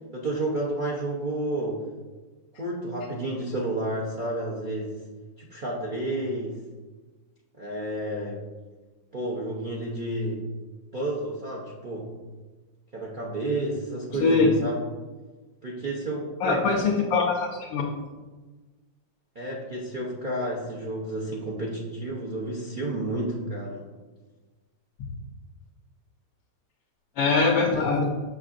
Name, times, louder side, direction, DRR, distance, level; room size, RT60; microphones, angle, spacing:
voice 1, 0.1-1.8 2.6-4.9 5.4-6.6 7.6-8.4 9.1-10.4 10.9-12.1 12.9-14.8 15.6-16.8 19.3-23.8 27.7-27.9, right 1 dB, 65° right, -4 dB, 0.4 m, -31 dB
voice 2, 16.4-17.9 25.0-25.1 27.2-28.1, left 4 dB, 90° left, -1 dB, 1.4 m, -22 dB
6.3 x 6.3 x 2.5 m, 1.3 s
omnidirectional pair, 2.0 m